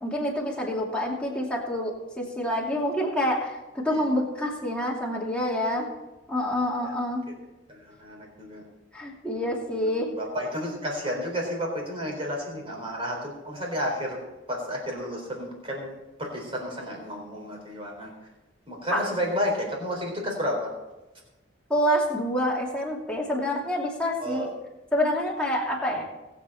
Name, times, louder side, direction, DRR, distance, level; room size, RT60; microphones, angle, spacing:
voice 1, 0.0-5.9 6.3-7.2 8.9-10.1 18.9-19.0 21.7-24.5 24.9-26.0, equal, 5° left, -3 dB, 2.6 m, -27 dB
voice 2, 7.7-8.6 9.7-14.2 14.5-15.9 16.2-18.1 18.7-20.7 24.2-24.5, equal, 25° right, 0 dB, 4.0 m, -31 dB
20.0 x 8.2 x 4.3 m, 1.1 s
head